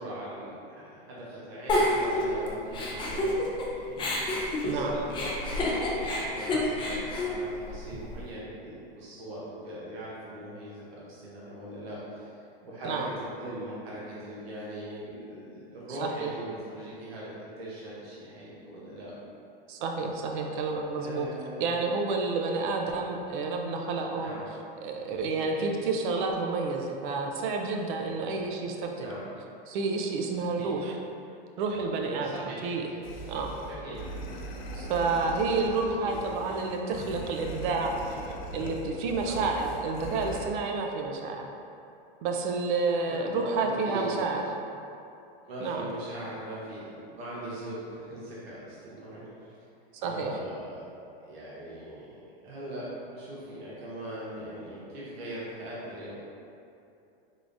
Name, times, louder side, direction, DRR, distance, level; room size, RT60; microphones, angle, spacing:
voice 1, 0.0-19.1 20.9-21.8 24.2-24.5 25.4-25.7 29.0-29.2 30.6-30.7 32.2-32.6 33.7-34.0 36.0-36.6 39.2-39.4 43.1-44.2 45.4-49.5 50.0-50.8 51.2-56.1, right 1 dB, 85° right, -7 dB, 1.1 m, -40 dB
Giggle, 1.7-3.7 4.0-8.2, left 1 dB, 15° left, 0.4 m, -29 dB
voice 2, 15.9-16.3 19.7-21.3 21.6-24.4 24.8-29.1 29.7-31.0 31.6-32.8 33.3-33.5 34.7-38.0 38.5-41.5 42.2-44.4 45.6-45.9 49.9-50.4, right 3 dB, 55° right, 2 dB, 0.5 m, -30 dB
sound 1, 33.0-40.5, equal, 75° left, 0.7 m, -40 dB
3.7 x 3.4 x 2.5 m, 2.7 s
supercardioid pair, 135°, 30 cm